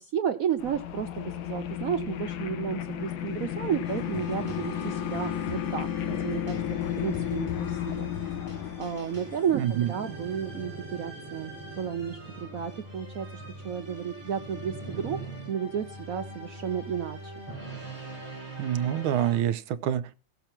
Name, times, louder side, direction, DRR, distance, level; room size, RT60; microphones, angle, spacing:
voice 1, 0.0-6.6 7.0-8.1 8.8-15.2 15.5-17.3, right 8 dB, 70° right, 0.8 m, -32 dB
sound 1, 0.6-10.5, left 10 dB, 75° left, 1.6 m, -33 dB
sound 2, 3.8-19.4, right 1 dB, 10° left, 6.4 m, -42 dB
voice 2, 9.5-9.9 18.6-20.1, right 10 dB, 90° right, 1.6 m, -27 dB
16.5 x 7.0 x 4.4 m
omnidirectional pair, 2.2 m